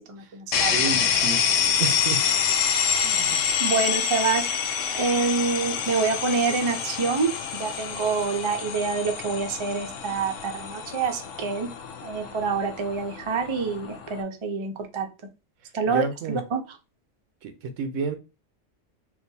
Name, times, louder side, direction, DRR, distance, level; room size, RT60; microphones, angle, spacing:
voice 1, 0.1-1.1 3.6-4.7 5.0-11.7 12.0-15.1 15.7-16.8, right 5 dB, 40° right, 0.4 m, -27 dB
sound 1, 0.5-14.2, left 7 dB, 85° left, 0.9 m, -27 dB
voice 2, 0.7-1.4 1.8-2.3 3.0-3.5 15.9-16.4 17.4-18.2, right 5 dB, 90° right, 1.0 m, -30 dB
3.8 x 2.4 x 2.7 m
omnidirectional pair, 1.3 m